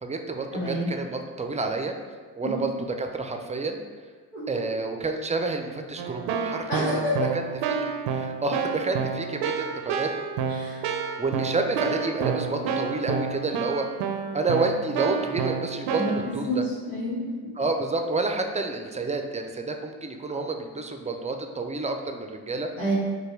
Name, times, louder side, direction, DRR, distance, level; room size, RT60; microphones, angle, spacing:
voice 1, 0.0-2.0 2.3-3.8 4.5-7.4 8.1-10.1 11.2-13.9 14.3-16.6 17.6-22.7, right 3 dB, 15° right, 4 dB, 0.5 m, -29 dB
voice 2, 0.5-0.9 2.4-2.6 4.3-4.4 6.7-7.1 10.6-10.8 16.0-16.2 16.4-17.2 22.8-22.9, equal, 80° left, -10 dB, 1.5 m, -28 dB
Keyboard (musical), 6.0-16.3, right 6 dB, 65° right, 0.6 m, -29 dB
4.7 x 2.3 x 4.6 m, 1.5 s
hypercardioid pair, 50°, 44 cm